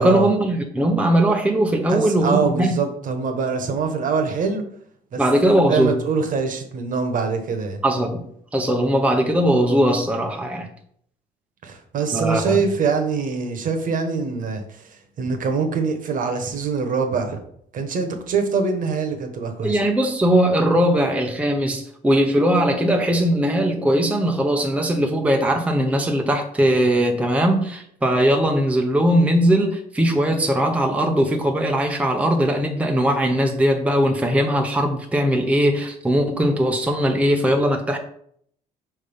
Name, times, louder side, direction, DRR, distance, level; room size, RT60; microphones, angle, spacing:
voice 1, 0.0-2.8 5.2-6.0 7.8-8.3 8.5-10.7 12.1-12.6 19.6-38.0, right 1 dB, 10° right, 3 dB, 0.8 m, -20 dB
voice 2, 1.9-4.6 5.1-5.2 5.7-7.8 11.6-14.9 15.2-17.4 17.7-19.8, right 5 dB, 50° right, 5 dB, 1.2 m, -24 dB
5.4 x 3.5 x 5.4 m, 0.66 s
cardioid pair, 110°, 17 cm